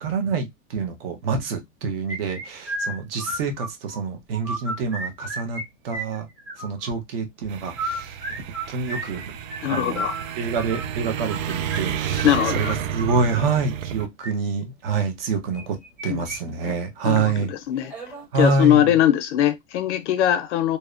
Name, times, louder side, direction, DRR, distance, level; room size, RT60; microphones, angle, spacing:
voice 1, 0.0-5.6 5.8-6.3 6.6-8.2 8.7-9.2 9.7-10.1 10.4-15.8 16.0-17.5 18.3-18.9, right 4 dB, 45° right, 0.7 m, -26 dB
Anja whistle, 2.1-4.0 4.3-5.6 5.9-6.9 7.6-13.2 14.0-14.3 15.5-16.4 16.6-16.7 17.2-17.3 17.9-18.2, right 1 dB, 5° right, 0.7 m, -33 dB
sound 1, 7.5-14.1, right 9 dB, 85° right, 0.5 m, -31 dB
voice 2, 9.6-10.1 12.2-12.8 16.1-16.2 17.0-17.9 18.3-20.8, left 11 dB, 60° left, 0.6 m, -21 dB
2.7 x 2.1 x 2.4 m
supercardioid pair, 155°, 39 cm